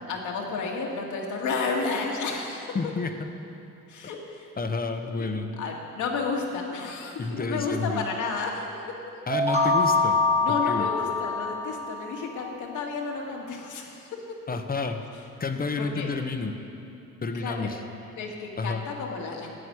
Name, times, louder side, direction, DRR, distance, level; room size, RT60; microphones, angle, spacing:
voice 1, 0.1-2.8 3.9-4.5 5.2-5.3 5.6-8.9 10.4-14.4 15.8-16.1 17.3-17.7 18.2-19.5, left 4 dB, 80° left, 0 dB, 2.1 m, -32 dB
voice 2, 2.7-3.3 4.6-5.5 7.2-8.0 9.3-10.2 10.6-10.9 14.5-15.0 15.4-16.6 17.2-17.8 18.6-18.8, left 4 dB, 30° left, 6 dB, 1.1 m, -30 dB
sound 1, 9.3-12.1, left 3 dB, 20° right, 1.5 m, -24 dB
11.0 x 8.0 x 9.5 m, 2.7 s
cardioid pair, 90°, 30 cm